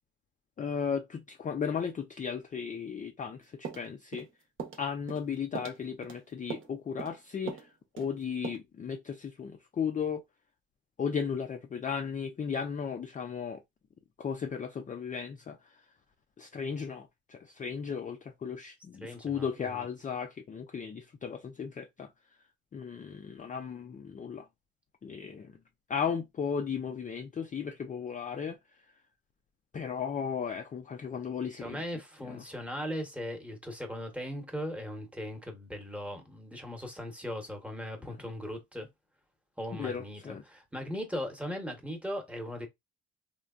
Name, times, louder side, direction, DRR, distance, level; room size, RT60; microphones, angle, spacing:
voice 1, 0.6-4.3 4.8-7.7 7.9-10.2 11.0-13.6 14.2-15.6 16.4-22.1 22.7-24.5 25.0-25.5 25.9-28.6 29.7-31.8 32.3-32.4 39.7-40.4, left 6 dB, 25° left, 0.4 m, -35 dB
sound 1, 3.6-4.3 4.6-4.8 5.1-5.3 5.5-6.2 6.5-6.7 7.0-7.2 7.5-7.7 8.0-8.1 8.4-8.6, right 6 dB, 40° right, 0.9 m, -40 dB
voice 2, 19.0-19.9 31.6-38.9 39.6-42.7, equal, 5° right, 1.0 m, -38 dB
3.2 x 2.2 x 2.4 m
cardioid pair, 90°, 30 cm